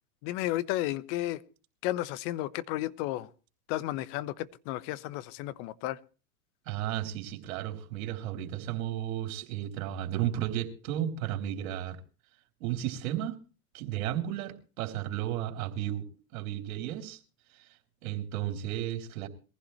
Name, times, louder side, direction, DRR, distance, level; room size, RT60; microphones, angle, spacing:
voice 1, 0.2-1.4 1.8-3.3 3.7-6.0, left 15 dB, 50° left, 1.2 m, -33 dB
voice 2, 6.7-12.0 12.6-13.4 13.7-17.2 17.6-17.7 18.0-19.3, right 12 dB, 65° right, 3.6 m, -33 dB
22.0 x 15.5 x 3.2 m
hypercardioid pair, 110°, 44 cm